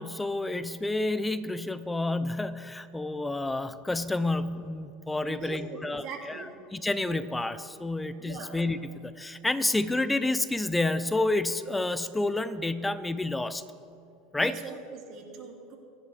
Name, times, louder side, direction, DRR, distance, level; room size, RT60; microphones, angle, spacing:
voice 1, 0.0-13.6 14.3-14.6, left 2 dB, 10° left, 13 dB, 0.7 m, -29 dB
voice 2, 5.2-6.5 8.2-8.6 14.3-15.8, right 5 dB, 55° right, 1 dB, 2.6 m, -41 dB
27.0 x 10.5 x 3.5 m, 2.5 s
supercardioid pair, 105°, 0 cm